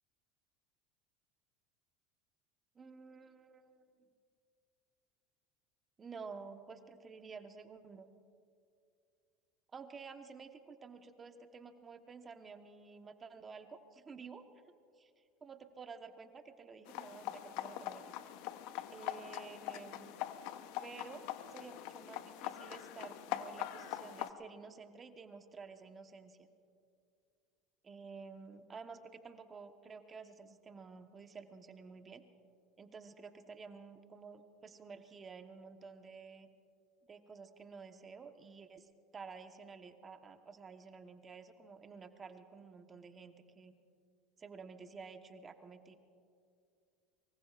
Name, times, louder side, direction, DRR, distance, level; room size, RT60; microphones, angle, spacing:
voice 1, 2.7-3.9 6.0-8.1 9.7-14.4 15.4-18.0 18.9-20.2 20.8-26.5 27.8-32.2 32.8-36.5 37.1-43.7 44.4-46.0, right 5 dB, 30° right, 7 dB, 1.1 m, -51 dB
sound 1, 16.9-24.3, left 13 dB, 70° left, 0.8 m, -43 dB
24.0 x 23.5 x 2.5 m, 2.4 s
supercardioid pair, 95°, 0 cm